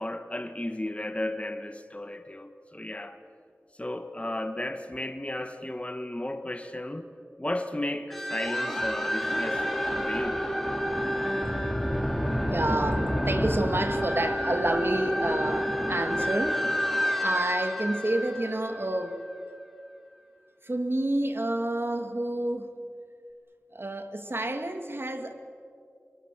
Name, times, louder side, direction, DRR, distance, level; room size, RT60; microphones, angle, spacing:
voice 1, 0.0-3.2 3.8-7.1 7.4-10.4, left 1 dB, 25° left, 7 dB, 1.7 m, -34 dB
sound 1, 8.1-19.3, equal, 5° left, 3.5 m, -29 dB
voice 2, 12.2-16.6 17.2-19.2 20.6-22.7 23.7-25.3, right 1 dB, 50° right, 6 dB, 2.3 m, -29 dB
29.5 x 23.0 x 7.6 m, 2.3 s
wide cardioid pair, 50°, 5 cm